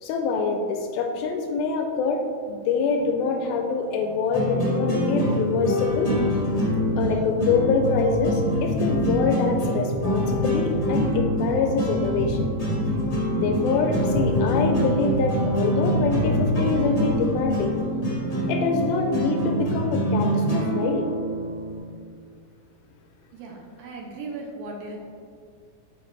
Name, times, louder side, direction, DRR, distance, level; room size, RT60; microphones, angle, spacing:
voice 1, 0.0-6.1 7.0-12.4 13.3-17.8 18.5-21.1, left 4 dB, 80° left, 3 dB, 2.2 m, -25 dB
sound 1, 3.0-21.8, equal, 45° left, 0.8 m, -26 dB
sound 2, 5.8-18.2 18.8-18.9, equal, 55° right, 2.7 m, -31 dB
voice 2, 23.3-25.0, right 3 dB, 75° right, 0 dB, 2.3 m, -37 dB
8.5 x 5.3 x 3.2 m, 2.2 s
omnidirectional pair, 4.5 m